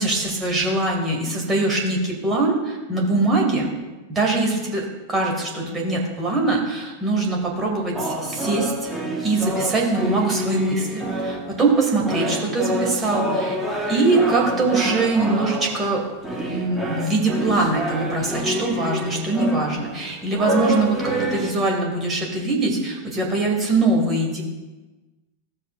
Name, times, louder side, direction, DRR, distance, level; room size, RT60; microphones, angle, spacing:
voice 1, 0.0-3.8 4.1-8.9 9.2-13.6 13.9-16.0 16.3-24.4, right 2 dB, 20° right, -1 dB, 2.1 m, -22 dB
Good King Wenceslas, 7.9-11.7 11.9-21.5, right 1 dB, ahead, 1.3 m, -27 dB
15.0 x 6.5 x 2.5 m, 1.2 s
figure-of-eight pair, 90°, 0 cm